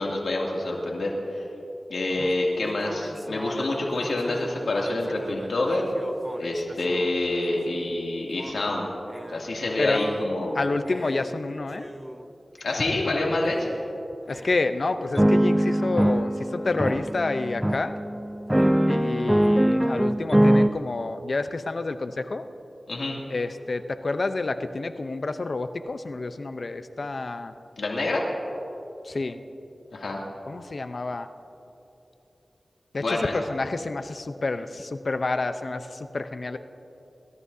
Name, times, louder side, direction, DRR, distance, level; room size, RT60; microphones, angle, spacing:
voice 1, 0.0-1.5 1.9-5.9 6.4-8.9 9.3-10.6 12.6-13.7 22.9-23.2 27.8-28.2 29.9-30.2 33.0-33.4, left 2 dB, 85° left, -2 dB, 2.5 m, -27 dB
sound 1, 2.2-2.3 2.6-7.0 8.4-8.5 9.1-9.4 9.9-10.3 10.9-11.3 11.8-12.1 12.7-12.8 13.5-13.7 14.3-14.5 15.2-20.7, right 1 dB, 10° right, 0.5 m, -24 dB
voice 2, 10.6-11.9 14.3-17.9 18.9-22.4 23.3-27.5 29.1-29.4 30.5-31.3 32.9-35.9 36.1-36.6, left 3 dB, 60° left, 9 dB, 0.7 m, -29 dB
27.5 x 14.0 x 2.8 m, 3.0 s
cardioid pair, 50°, 0 cm